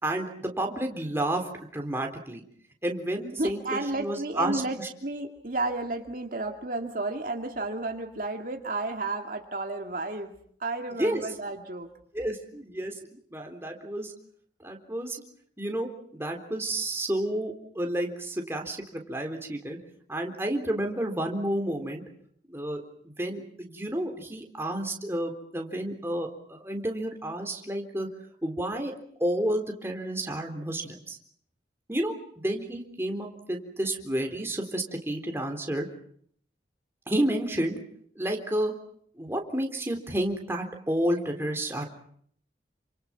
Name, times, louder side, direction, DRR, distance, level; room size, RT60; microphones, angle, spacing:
voice 1, 0.0-2.4 2.8-4.9 11.0-11.2 12.1-14.1 14.6-15.2 15.6-19.8 20.1-22.0 22.5-28.1 28.4-28.9 29.2-31.2 31.9-35.9 37.1-37.8 38.2-38.7 39.2-41.8, right 1 dB, 15° right, 3 dB, 3.8 m, -31 dB
voice 2, 3.4-10.3 10.6-11.9, right 2 dB, 50° right, 3 dB, 2.2 m, -32 dB
29.0 x 27.0 x 5.9 m, 0.64 s
head